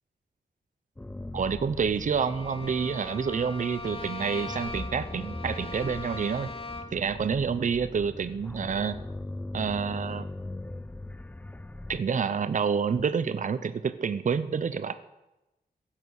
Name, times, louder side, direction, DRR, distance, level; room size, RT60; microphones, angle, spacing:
sound 1, 1.0-12.0, left 2 dB, 10° left, 0.4 m, -40 dB
voice 1, 1.3-6.5 6.9-8.9 9.5-10.3 11.9-14.9, right 6 dB, 50° right, 13 dB, 0.7 m, -28 dB
Bowed string instrument, 2.1-7.1, left 3 dB, 35° left, 1.7 m, -40 dB
15.5 x 11.0 x 6.5 m, 0.99 s
wide cardioid pair, 130°, 17 cm